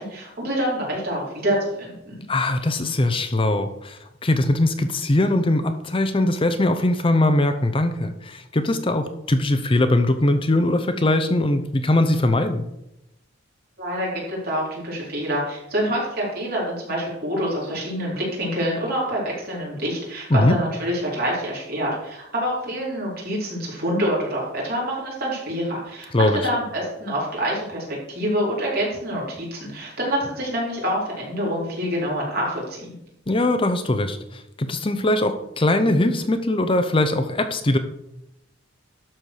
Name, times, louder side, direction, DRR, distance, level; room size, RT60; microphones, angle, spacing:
voice 1, 0.0-2.2 13.8-32.9, equal, 55° right, -4 dB, 4.4 m, -26 dB
voice 2, 2.3-12.6 20.3-20.6 26.1-26.4 33.3-37.8, left 1 dB, 30° left, 8 dB, 0.7 m, -21 dB
12.0 x 4.5 x 6.5 m, 0.84 s
head